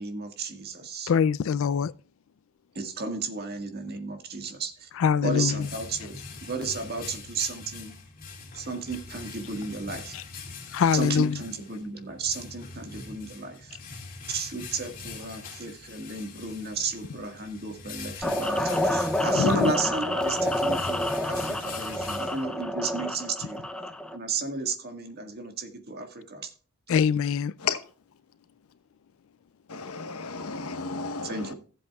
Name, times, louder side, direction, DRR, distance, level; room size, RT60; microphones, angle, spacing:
voice 1, 0.0-1.1 2.8-4.9 5.2-6.2 6.5-7.9 8.5-10.1 10.9-13.8 14.3-23.6 24.1-26.5 31.2-31.5, right 4 dB, 45° right, 1.7 m, -33 dB
voice 2, 1.1-1.9 5.0-5.7 10.1-10.2 10.7-11.4 19.3-19.7 26.9-27.5, left 7 dB, 65° left, 0.3 m, -23 dB
sound 1, 5.0-22.9, left 4 dB, 40° left, 2.5 m, -43 dB
sound 2, 18.2-24.2, left 1 dB, 5° left, 0.6 m, -28 dB
voice 3, 29.7-31.5, left 5 dB, 80° left, 1.0 m, -33 dB
16.0 x 7.8 x 2.3 m
head